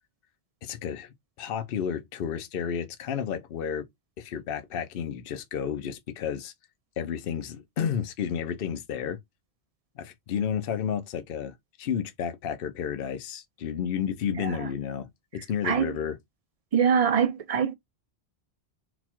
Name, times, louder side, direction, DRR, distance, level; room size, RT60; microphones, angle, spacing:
voice 1, 0.6-3.9 4.2-6.5 7.0-9.2 10.0-16.2, left 8 dB, 65° left, 0.8 m, -32 dB
voice 2, 16.7-17.7, right 7 dB, 50° right, 0.5 m, -23 dB
4.0 x 2.3 x 4.3 m
omnidirectional pair, 1.1 m